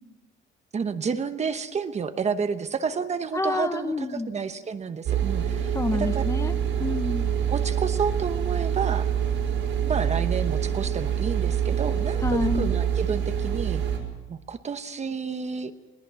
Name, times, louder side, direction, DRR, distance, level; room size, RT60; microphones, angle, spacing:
voice 1, 0.7-6.2 7.5-9.1 9.8-13.8 14.3-15.7, right 5 dB, 35° right, 9 dB, 0.9 m, -30 dB
voice 2, 3.3-4.3 5.7-7.3 12.2-12.7, left 2 dB, 15° left, 9 dB, 1.0 m, -28 dB
sound 1, 5.1-14.0, right 8 dB, 80° right, 5.1 m, -26 dB
21.5 x 18.5 x 7.0 m, 1.1 s
cardioid pair, 160°, 21 cm